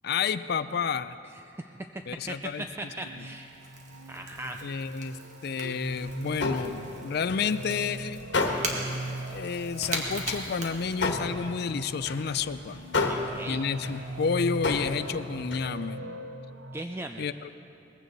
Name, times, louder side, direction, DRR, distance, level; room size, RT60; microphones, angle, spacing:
voice 1, 0.0-1.2 2.1-2.6 4.6-5.2 5.4-8.2 9.3-12.8 13.5-16.1 17.2-17.5, left 6 dB, 60° left, 14 dB, 0.4 m, -30 dB
voice 2, 1.3-1.9 2.3-3.5 4.1-4.6 13.1-13.6 16.7-17.3, right 1 dB, 15° right, 5 dB, 0.4 m, -38 dB
Crackle / Crack, 2.0-11.5, right 2 dB, 45° right, 1.8 m, -40 dB
sound 1, 2.1-16.8, right 1 dB, 75° right, 0.7 m, -41 dB
sound 2, 5.8-7.8 8.2-8.9 9.3-9.4 9.8-15.7, left 3 dB, 85° left, 1.4 m, -32 dB
20.0 x 15.5 x 4.1 m, 2.7 s
head